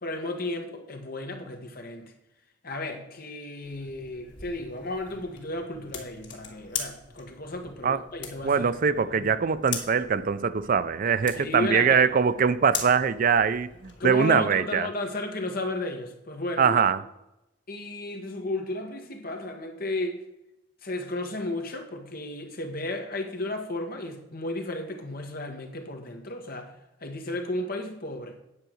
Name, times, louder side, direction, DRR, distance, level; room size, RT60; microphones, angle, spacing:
voice 1, 0.0-2.1 2.6-8.7 9.1-9.3 11.3-12.0 14.0-16.8 17.7-20.2 20.8-26.7 27.0-28.4, left 2 dB, 50° left, 4 dB, 1.5 m, -34 dB
sound 1, 3.6-14.0, left 6 dB, 75° left, 2.3 m, -41 dB
voice 2, 8.4-14.9 16.6-17.0, right 6 dB, 45° right, 14 dB, 0.4 m, -23 dB
9.6 x 4.8 x 7.7 m, 0.89 s
head